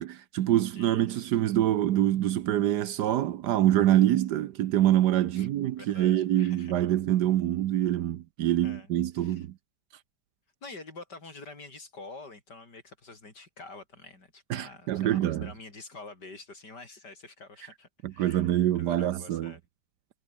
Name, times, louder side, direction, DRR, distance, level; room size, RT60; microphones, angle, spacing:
voice 1, 0.0-9.5 14.5-15.4 18.0-19.5, right 12 dB, 70° right, 1.2 m, -25 dB
voice 2, 0.7-1.2 5.4-5.5 5.8-6.9 8.6-9.5 10.6-19.6, left 3 dB, 60° left, 5.2 m, -47 dB
omnidirectional pair, 2.0 m